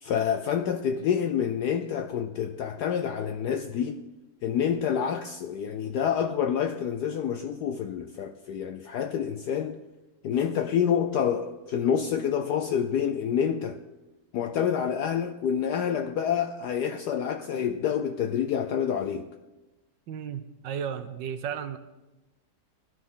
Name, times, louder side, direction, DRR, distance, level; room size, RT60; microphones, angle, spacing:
voice 1, 0.0-4.0 4.4-9.8 10.2-13.8 14.3-19.3, left 8 dB, 75° left, 0.9 m, -28 dB
voice 2, 20.1-21.8, right 8 dB, 70° right, 1.2 m, -34 dB
16.0 x 12.5 x 3.8 m
omnidirectional pair, 2.3 m